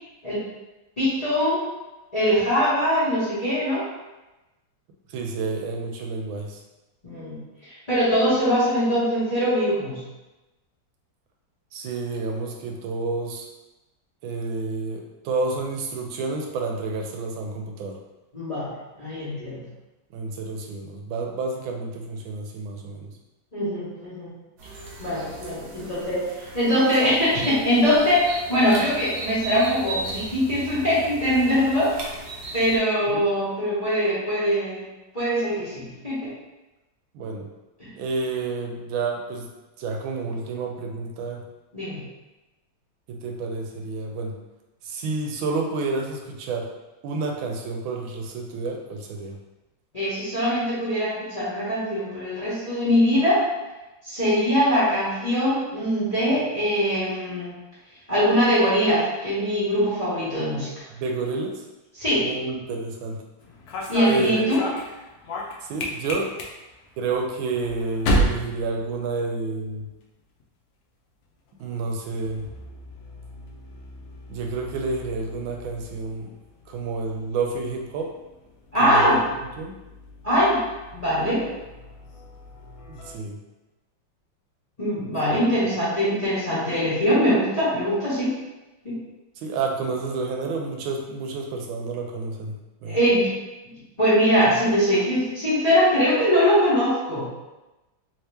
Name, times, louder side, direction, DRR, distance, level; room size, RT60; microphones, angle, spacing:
voice 1, 1.0-1.6 2.1-3.9 7.0-7.4 7.7-10.0 18.3-19.6 23.5-24.3 25.0-26.3 26.5-31.9 32.5-34.9 35.1-36.3 37.8-37.9 41.7-42.0 49.9-53.4 54.0-57.6 58.1-60.7 62.0-62.3 63.9-64.6 78.7-79.2 80.2-80.6 80.9-81.5 84.8-88.3 88.8-89.0 92.9-93.3 94.0-97.3, equal, 25° left, -11 dB, 0.9 m, -22 dB
voice 2, 5.1-6.6 11.7-13.5 14.2-18.0 20.1-23.1 33.1-33.2 37.1-37.5 38.0-39.5 39.8-41.4 43.1-44.4 44.8-46.7 47.0-49.4 60.9-61.6 62.2-63.2 64.1-64.4 65.6-66.3 67.0-69.9 71.6-72.5 74.3-76.3 76.7-78.1 78.8-79.7 82.9-83.4 85.6-85.7 89.4-93.0, right 3 dB, 80° right, 1 dB, 1.4 m, -30 dB
sound 1, 24.6-32.8, right 2 dB, 60° right, 1.1 m, -36 dB
sound 2, 63.4-69.6 69.9-70.4 71.5-83.1, equal, 70° left, 0.9 m, -33 dB
3.3 x 2.8 x 3.3 m, 1.1 s
omnidirectional pair, 2.2 m